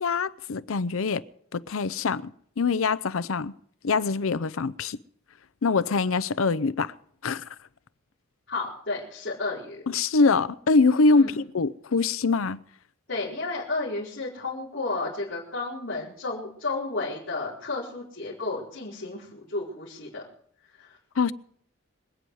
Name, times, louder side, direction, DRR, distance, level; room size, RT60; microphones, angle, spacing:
voice 1, 0.0-1.2 1.5-3.5 3.8-5.0 5.6-6.9 7.2-7.4 9.9-12.6 21.2-21.3, left 4 dB, 80° left, 0.6 m, -24 dB
voice 2, 8.5-9.8 11.1-11.4 13.1-20.2 20.7-21.0, left 3 dB, 60° left, 4.5 m, -32 dB
26.0 x 9.3 x 4.8 m
head